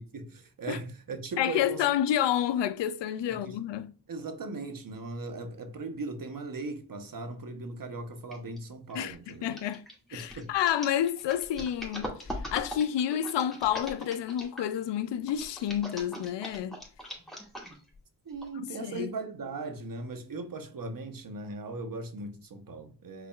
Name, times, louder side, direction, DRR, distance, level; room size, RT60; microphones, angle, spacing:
voice 1, 0.0-1.8 3.3-3.6 4.1-9.5 10.1-10.5 18.2-23.3, right 3 dB, 50° right, 1.1 m, -38 dB
voice 2, 1.4-3.9 8.9-9.8 10.1-12.2 12.5-16.8 18.6-19.1, left 10 dB, 85° left, 0.5 m, -29 dB
sound 1, 8.3-8.6 8.9-14.7 15.3-17.9 18.4-18.5, equal, ahead, 2.3 m, -41 dB
5.8 x 3.9 x 2.4 m
cardioid pair, 50°, 42 cm